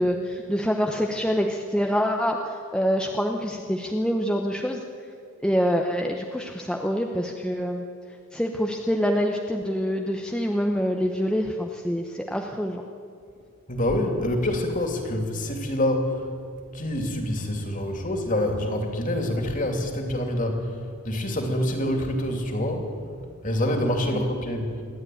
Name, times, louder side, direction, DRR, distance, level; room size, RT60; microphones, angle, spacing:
voice 1, 0.0-4.8 5.4-7.8 8.3-12.8 24.1-24.2, equal, 5° left, 2 dB, 0.9 m, -26 dB
voice 2, 13.7-16.2 16.7-22.9 23.4-24.7, left 1 dB, 35° left, 3 dB, 2.9 m, -26 dB
26.5 x 12.0 x 9.3 m, 2.3 s
head